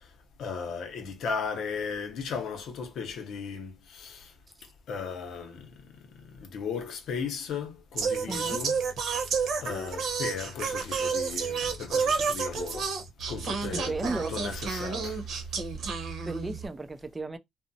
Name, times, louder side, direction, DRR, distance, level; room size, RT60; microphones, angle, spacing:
voice 1, 0.4-4.3 4.9-5.7 6.3-8.8 9.6-12.9 13.3-15.2, left 6 dB, 75° left, 0.7 m, -36 dB
Singing, 7.9-16.7, right 5 dB, 70° right, 0.8 m, -31 dB
voice 2, 8.3-8.6 13.7-14.4 16.2-17.4, right 3 dB, 25° right, 0.4 m, -34 dB
2.8 x 2.1 x 2.6 m
cardioid pair, 90°, 0 cm